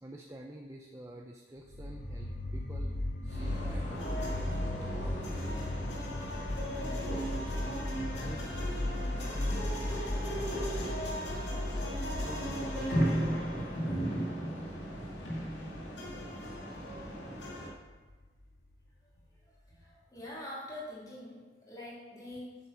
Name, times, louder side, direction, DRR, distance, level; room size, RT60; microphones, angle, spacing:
voice 1, 0.0-5.2 6.5-7.9 8.2-11.7 12.2-13.7, right 1 dB, 15° right, 1 dB, 0.6 m, -48 dB
sound 1, 1.7-18.7, left 1 dB, 50° left, 1.1 m, -37 dB
sound 2, 3.3-17.7, equal, 75° left, 2.2 m, -36 dB
voice 2, 19.7-22.6, left 1 dB, 20° left, -6 dB, 3.2 m, -44 dB
8.4 x 7.4 x 6.0 m, 1.3 s
head